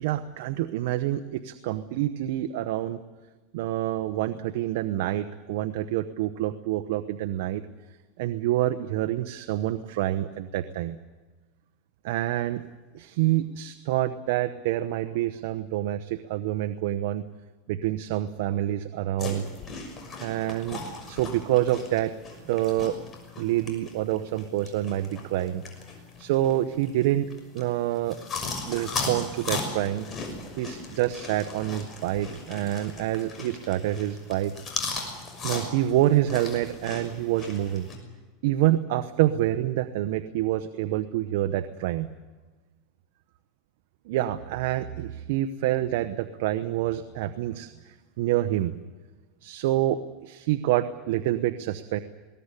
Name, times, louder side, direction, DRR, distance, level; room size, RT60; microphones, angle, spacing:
voice 1, 0.0-3.0 3.5-7.6 8.2-11.0 12.0-12.6 12.9-17.2 17.7-19.5 20.2-20.8 21.1-22.1 22.4-23.0 23.4-25.6 26.2-27.3 27.5-28.2 28.6-30.0 30.6-34.5 35.4-37.9 38.4-42.1 44.1-48.7 49.4-52.0, right 13 dB, 70° right, 9 dB, 1.0 m, -27 dB
sound 1, 19.2-38.0, left 4 dB, 25° left, 6.1 m, -38 dB
21.0 x 18.5 x 10.0 m, 1.3 s
supercardioid pair, 135°, 0 cm